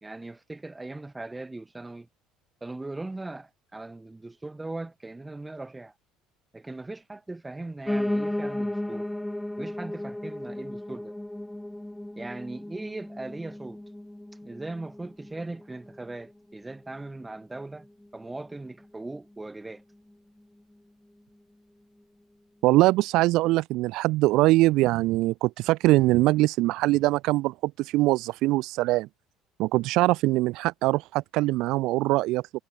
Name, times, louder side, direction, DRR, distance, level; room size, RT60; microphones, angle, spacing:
voice 1, 0.0-2.1 2.6-5.9 6.5-9.1 9.6-11.1 12.2-13.8 14.4-17.9 18.1-19.8, right 2 dB, 15° right, 1.5 m, -39 dB
Piano, 7.9-17.0 17.4-18.5 18.8-18.9 19.1-19.2 19.5-19.6 20.1-20.2, left 1 dB, 5° left, 0.6 m, -35 dB
voice 2, 22.6-29.1 29.6-32.4, right 19 dB, 70° right, 0.5 m, -22 dB
supercardioid pair, 95°, 0 cm